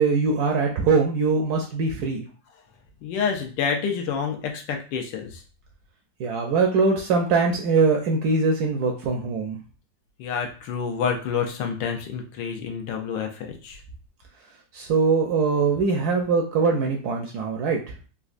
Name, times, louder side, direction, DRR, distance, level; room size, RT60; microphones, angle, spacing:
voice 1, 0.0-2.3 6.2-9.6 14.7-17.8, right 4 dB, 70° right, 1 dB, 0.9 m, -22 dB
voice 2, 3.0-5.4 10.2-13.8, left 6 dB, 75° left, 3 dB, 1.3 m, -28 dB
4.0 x 2.3 x 2.5 m, 0.37 s
omnidirectional pair, 2.0 m